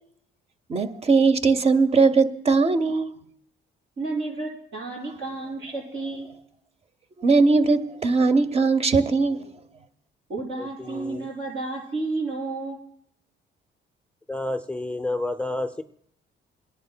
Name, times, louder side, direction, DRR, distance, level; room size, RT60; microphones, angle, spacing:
voice 1, 0.7-3.1 7.2-9.5, right 4 dB, 30° right, 0.8 m, -20 dB
voice 2, 4.0-6.3 10.3-12.8, right 3 dB, 70° right, 6.0 m, -31 dB
voice 3, 10.6-11.3 14.3-15.8, left 2 dB, 5° left, 0.5 m, -30 dB
28.0 x 10.5 x 2.2 m
cardioid pair, 90°, 20 cm